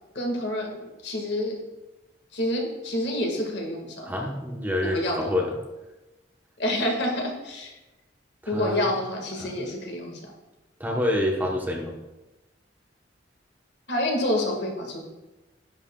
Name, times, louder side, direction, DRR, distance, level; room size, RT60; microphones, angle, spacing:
voice 1, 0.2-1.5 2.3-4.1 4.8-5.3 6.6-7.7 8.5-10.2 13.9-15.0, left 1 dB, 70° left, 1 dB, 1.8 m, -28 dB
voice 2, 4.0-5.5 8.4-8.9 9.4-9.6 10.8-11.9, left 1 dB, 10° right, -1 dB, 1.0 m, -27 dB
10.5 x 8.2 x 2.3 m, 1.0 s
head